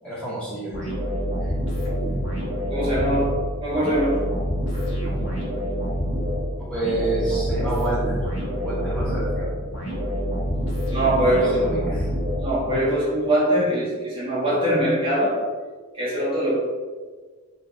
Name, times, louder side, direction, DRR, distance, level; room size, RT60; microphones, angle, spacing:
voice 1, 0.0-1.0 1.4-1.5 6.7-8.2 8.6-9.6 11.2-12.1, right 2 dB, 5° left, -8 dB, 0.9 m, -28 dB
sound 1, 0.7-12.9, equal, 65° left, 1.1 m, -27 dB
voice 2, 2.7-4.3 4.7-4.8 10.9-11.8 12.4-15.5 15.9-16.6, right 1 dB, 25° right, -8 dB, 0.8 m, -22 dB
2.9 x 2.7 x 3.7 m, 1.4 s
head